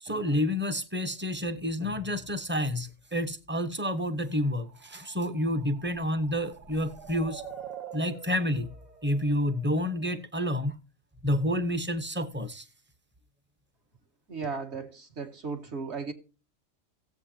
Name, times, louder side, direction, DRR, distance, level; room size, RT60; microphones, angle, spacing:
voice 1, 0.0-7.4 7.9-8.7 9.0-10.8 11.2-12.6, left 1 dB, 10° right, 0.8 m, -29 dB
sound 1, 4.4-10.2, right 7 dB, 35° right, 1.4 m, -46 dB
voice 2, 14.3-16.1, right 4 dB, 55° right, 2.1 m, -36 dB
16.5 x 8.3 x 2.8 m
omnidirectional pair, 1.4 m